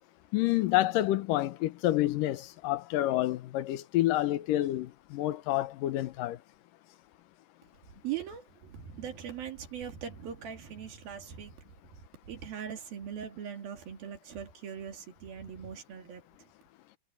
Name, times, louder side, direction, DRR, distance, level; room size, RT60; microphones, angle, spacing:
voice 1, 0.3-6.4, left 15 dB, 70° left, 2.3 m, -28 dB
voice 2, 8.0-11.6 12.3-16.2, right 8 dB, 70° right, 4.5 m, -40 dB
omnidirectional pair, 4.4 m